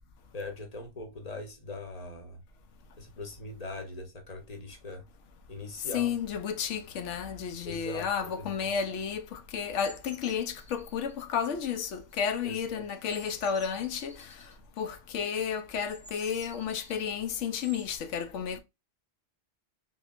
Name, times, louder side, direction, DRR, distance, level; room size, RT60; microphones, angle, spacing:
voice 1, 0.3-2.4 3.0-5.0 5.5-6.1 7.6-8.7 12.4-12.8, left 2 dB, 35° left, 0.8 m, -41 dB
voice 2, 5.9-14.3 14.8-18.6, left 7 dB, 75° left, 0.9 m, -32 dB
sound 1, 9.8-11.2 12.0-12.6 13.0-14.5 15.9-18.0, right 1 dB, 10° right, 0.6 m, -52 dB
3.6 x 3.1 x 2.4 m
omnidirectional pair, 1.3 m